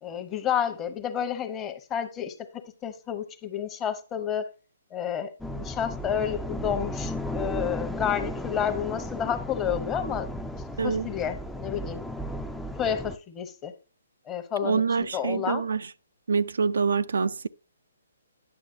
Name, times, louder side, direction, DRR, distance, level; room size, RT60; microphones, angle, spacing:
voice 1, 0.0-4.5 4.9-10.3 10.8-12.0 12.8-13.7 14.3-15.6, left 9 dB, 20° left, 0.9 m, -30 dB
sound 1, 5.4-13.1, equal, 5° left, 0.4 m, -34 dB
voice 2, 10.8-11.1 14.6-15.9 16.3-17.5, right 5 dB, 70° right, 0.3 m, -26 dB
9.7 x 6.1 x 2.6 m
figure-of-eight pair, 135°, 0 cm